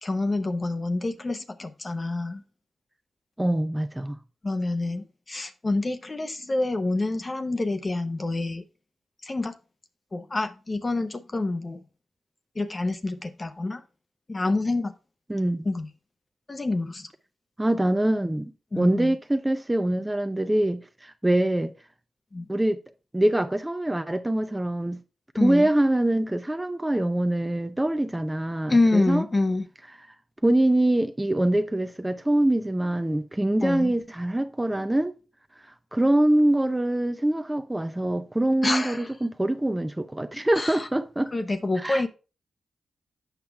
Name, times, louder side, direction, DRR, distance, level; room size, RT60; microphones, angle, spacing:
voice 1, 0.0-2.4 4.4-8.6 9.2-9.5 10.1-11.8 12.5-13.8 14.3-14.9 15.6-15.9 16.5-17.1 18.7-19.1 22.3-22.5 25.4-25.7 28.7-29.7 33.6-33.9 38.6-39.1 40.5-40.9 41.3-42.1, left 2 dB, 35° left, 0.9 m, -27 dB
voice 2, 3.4-4.2 15.3-15.7 17.6-21.7 22.5-22.8 23.1-25.0 25.4-29.2 30.4-35.1 35.9-41.3 41.8-42.1, right 1 dB, 15° right, 0.6 m, -24 dB
8.2 x 5.7 x 3.4 m
supercardioid pair, 50°, 0 cm